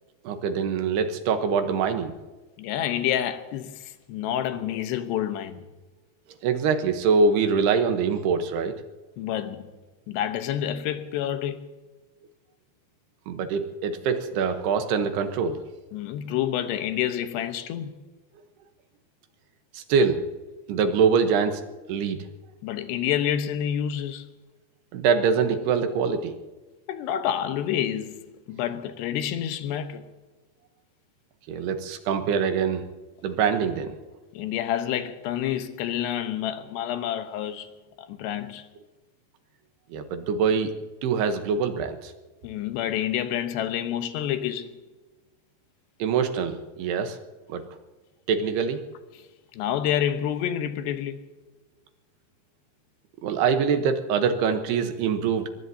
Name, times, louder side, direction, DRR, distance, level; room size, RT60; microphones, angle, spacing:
voice 1, 0.2-2.1 6.4-8.7 13.3-15.6 19.7-20.2 20.7-21.6 21.9-22.2 24.9-26.4 31.5-32.8 33.2-34.0 39.9-40.7 41.0-42.1 46.0-47.2 47.5-47.6 48.3-48.8 53.2-55.5, right 6 dB, 70° right, 2.9 m, -24 dB
voice 2, 2.6-5.7 9.2-9.7 10.1-11.6 15.9-17.9 22.6-24.3 26.9-30.0 34.3-37.7 38.0-38.7 42.4-44.8 49.5-51.2, left 10 dB, 75° left, 3.0 m, -28 dB
23.5 x 21.0 x 2.8 m
omnidirectional pair, 5.1 m